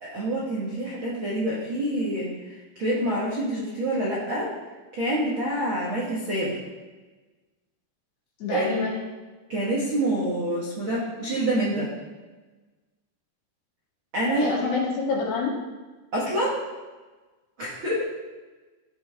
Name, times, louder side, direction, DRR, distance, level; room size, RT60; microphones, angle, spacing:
voice 1, 0.0-4.5 4.9-6.6 8.5-8.9 9.5-11.9 14.1-14.7 16.1-16.7 17.6-18.0, right 1 dB, 65° right, -7 dB, 1.2 m, -27 dB
voice 2, 8.4-8.9 14.3-15.6, left 4 dB, 65° left, -5 dB, 4.3 m, -27 dB
16.0 x 5.9 x 3.6 m, 1.2 s
omnidirectional pair, 5.4 m